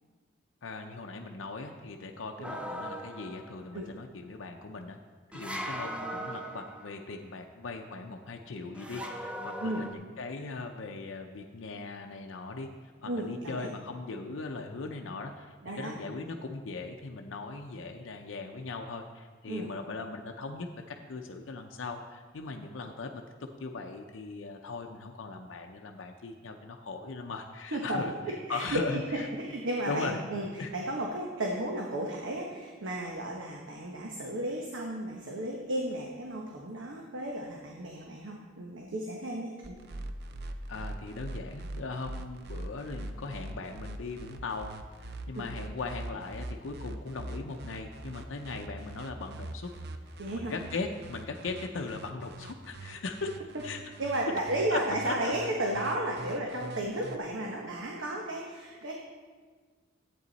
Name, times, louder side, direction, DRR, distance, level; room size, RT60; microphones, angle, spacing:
voice 1, 0.6-5.0 5.3-12.7 13.0-23.2 23.6-28.1 28.5-29.3 29.9-30.2 30.6-30.7 40.7-44.7 45.0-49.7 50.3-53.3 53.6-53.8 54.7-54.8 55.1-55.3, left 3 dB, 85° left, 3 dB, 0.6 m, -39 dB
sound 1, 2.4-3.7 5.3-7.2 8.7-9.9, equal, 5° right, 0.6 m, -39 dB
voice 2, 13.1-13.7 15.6-16.2 19.5-19.7 27.7-28.8 29.1-39.8 45.4-45.5 50.2-50.5 54.0-58.9, right 1 dB, 80° right, -1 dB, 1.1 m, -34 dB
sound 2, 39.6-57.2, right 2 dB, 60° right, 0.7 m, -42 dB
11.0 x 8.5 x 4.0 m, 1.5 s
head